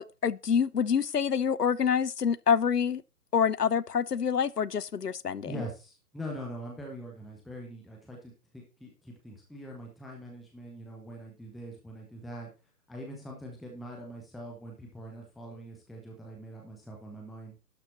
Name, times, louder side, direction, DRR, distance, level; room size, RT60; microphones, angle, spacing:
voice 1, 0.0-3.0 3.3-5.5, left 7 dB, 85° left, 0.7 m, -27 dB
voice 2, 5.4-12.5 12.9-17.6, equal, ahead, 0.4 m, -43 dB
11.5 x 7.1 x 4.1 m
figure-of-eight pair, 135°, 47 cm